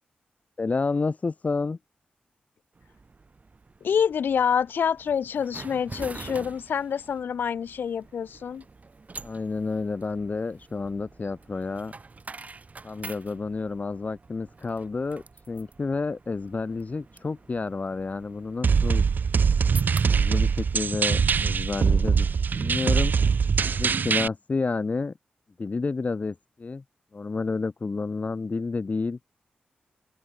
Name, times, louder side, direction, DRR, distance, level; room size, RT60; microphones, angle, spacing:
voice 1, 0.6-1.8 9.2-11.9 12.8-19.1 20.1-22.3 22.5-23.1 23.7-25.1 25.6-26.8 27.1-29.2, left 4 dB, 45° left, 1.3 m, -30 dB
sound 1, 2.7-21.8, right 3 dB, 45° right, 3.4 m, -47 dB
voice 2, 3.8-8.6, left 7 dB, 75° left, 0.7 m, -27 dB
sound 2, 18.6-24.3, right 6 dB, 65° right, 0.8 m, -22 dB
open air
supercardioid pair, 40°, 3 cm